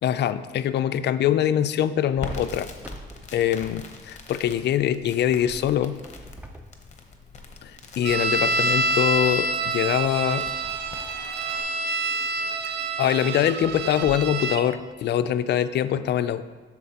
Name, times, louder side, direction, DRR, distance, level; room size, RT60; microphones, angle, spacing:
voice 1, 0.0-2.7 3.3-6.0 7.6-10.5 13.0-16.4, left 10 dB, 60° left, 12 dB, 0.4 m, -23 dB
Crackle, 2.1-11.6, left 3 dB, 35° left, 0.9 m, -42 dB
sound 1, 2.4-4.4 5.5-7.5 8.1-8.3 8.9-9.0 11.7-11.8 12.4-12.5 13.3-14.6, right 1 dB, 10° right, 0.6 m, -45 dB
sound 2, 8.0-14.6, right 2 dB, 60° right, 0.5 m, -27 dB
12.5 x 4.2 x 2.9 m, 1.4 s
cardioid pair, 90°, 20 cm